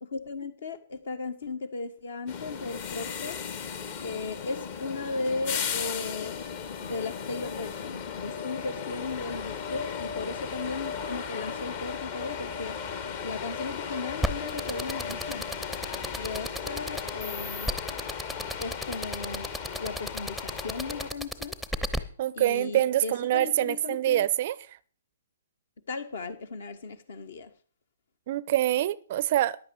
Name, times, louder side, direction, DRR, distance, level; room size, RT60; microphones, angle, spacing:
voice 1, 0.0-3.4 4.0-6.4 6.8-12.8 13.2-15.5 16.1-17.7 18.6-19.5 19.8-21.5 22.3-24.2 25.9-27.5, left 3 dB, 55° left, 1.4 m, -36 dB
sound 1, 2.3-21.1, left 7 dB, 40° left, 1.3 m, -36 dB
sound 2, 14.2-22.0, equal, 5° left, 0.8 m, -32 dB
voice 2, 22.2-24.8 28.3-29.6, right 13 dB, 40° right, 0.5 m, -25 dB
14.5 x 10.5 x 4.7 m
figure-of-eight pair, 120°, 0 cm